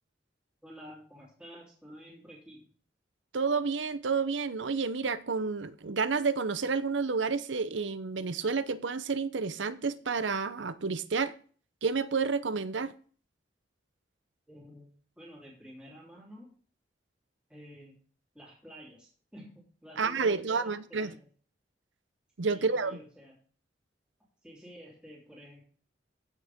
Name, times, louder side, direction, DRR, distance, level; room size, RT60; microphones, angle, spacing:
voice 1, 0.6-2.7 14.5-14.9 15.2-16.5 17.5-18.0 18.3-21.3 22.5-23.4 24.4-25.6, equal, 5° right, 3.5 m, -50 dB
voice 2, 3.3-11.4 11.8-12.9 20.0-21.1 22.4-23.0, right 4 dB, 90° right, 0.7 m, -30 dB
15.5 x 6.5 x 3.6 m
head